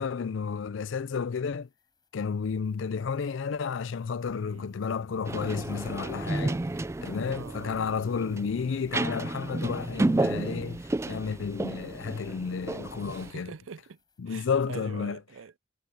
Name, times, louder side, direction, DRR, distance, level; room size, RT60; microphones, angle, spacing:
voice 1, 0.0-1.7 2.1-6.6 7.0-13.5 14.2-15.2, left 6 dB, 70° left, 0.4 m, -32 dB
sound 1, 1.5-14.8, left 5 dB, 20° left, 6.6 m, -71 dB
sound 2, 4.2-11.7, left 1 dB, 50° left, 6.3 m, -57 dB
voice 2, 4.4-4.7 7.3-8.0 13.0-14.0 14.3-15.6, right 5 dB, 85° right, 0.5 m, -44 dB
sound 3, 5.3-13.3, right 2 dB, 15° right, 0.3 m, -32 dB
head